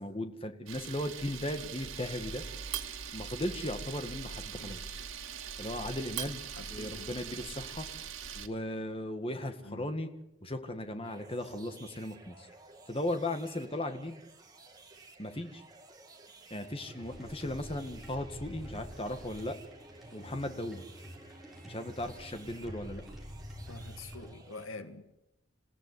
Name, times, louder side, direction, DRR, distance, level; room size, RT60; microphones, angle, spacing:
voice 1, 0.0-2.4 3.1-5.0 5.6-6.4 6.7-7.9 8.4-10.1 10.4-12.5 12.9-14.2 15.2-15.6 16.5-19.6 20.1-20.9 21.6-23.0, left 1 dB, 25° left, 1.9 m, -37 dB
Camera, 0.7-8.5, right 7 dB, 90° right, 2.4 m, -41 dB
voice 2, 6.6-7.1 9.6-9.9 23.7-25.2, left 2 dB, 85° left, 2.0 m, -46 dB
sound 1, 11.0-24.6, right 3 dB, 20° right, 2.9 m, -55 dB
sound 2, 16.7-24.3, equal, ahead, 6.3 m, -47 dB
27.5 x 17.0 x 9.8 m
head